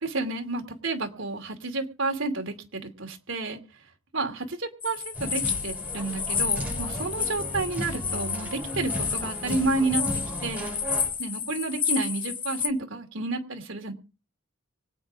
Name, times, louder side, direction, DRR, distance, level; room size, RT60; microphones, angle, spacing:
voice 1, 0.0-3.6 4.1-10.0 10.4-10.7 11.2-13.9, right 3 dB, 70° right, 3 dB, 2.7 m, -30 dB
sound 1, 4.8-12.7, left 7 dB, 25° left, 0.8 m, -31 dB
sound 2, 5.1-11.1, equal, 10° right, 7.0 m, -35 dB
25.0 x 9.0 x 3.6 m, 0.33 s
head